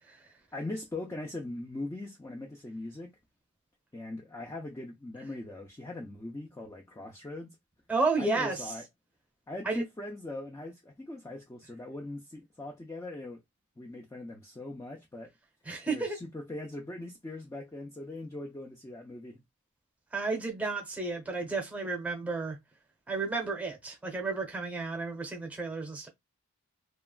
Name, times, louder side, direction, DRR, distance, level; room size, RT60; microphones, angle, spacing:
voice 1, 0.5-3.1 3.9-7.6 8.2-8.8 9.5-13.4 13.8-15.3 15.9-19.4, left 2 dB, 15° left, 0.3 m, -40 dB
voice 2, 7.9-8.7 9.6-9.8 15.7-16.2 20.1-22.6 23.1-26.1, right 3 dB, 5° right, 0.8 m, -32 dB
2.9 x 2.3 x 2.3 m
head